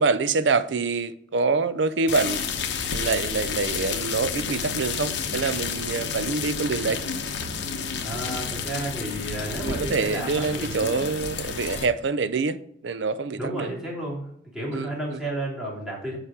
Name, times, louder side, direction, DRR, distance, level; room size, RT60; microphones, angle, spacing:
voice 1, 0.0-2.4 2.9-7.0 9.6-12.6 12.8-13.7 14.7-14.9, right 4 dB, 85° right, 0.5 m, -25 dB
sound 1, 2.1-11.9, left 6 dB, 80° left, 1.0 m, -30 dB
voice 2, 8.0-10.9 13.4-16.2, right 1 dB, 5° right, 2.9 m, -32 dB
7.3 x 5.1 x 4.9 m
head